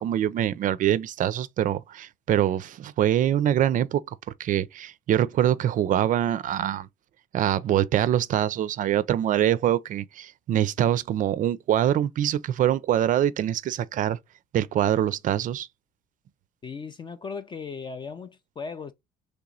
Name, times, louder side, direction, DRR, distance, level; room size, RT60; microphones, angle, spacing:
voice 1, 0.0-4.0 4.4-6.9 7.3-14.2 14.5-15.7, right 11 dB, 50° right, 0.4 m, -24 dB
voice 2, 16.6-18.9, left 5 dB, 30° left, 0.4 m, -37 dB
3.2 x 3.0 x 3.7 m
cardioid pair, 110°, 17 cm